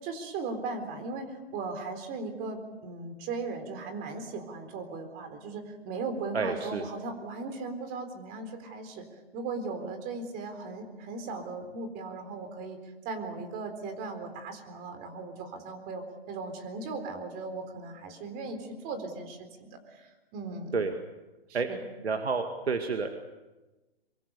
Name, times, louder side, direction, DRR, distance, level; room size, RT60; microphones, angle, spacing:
voice 1, 0.0-9.0 9.3-20.7 21.5-21.8, right 3 dB, 30° right, 7 dB, 4.1 m, -38 dB
voice 2, 6.3-6.8 20.7-20.9 21.5-21.7 22.0-23.1, right 4 dB, 85° right, 6 dB, 2.1 m, -29 dB
25.0 x 23.5 x 6.9 m, 1.1 s
hypercardioid pair, 130°, 31 cm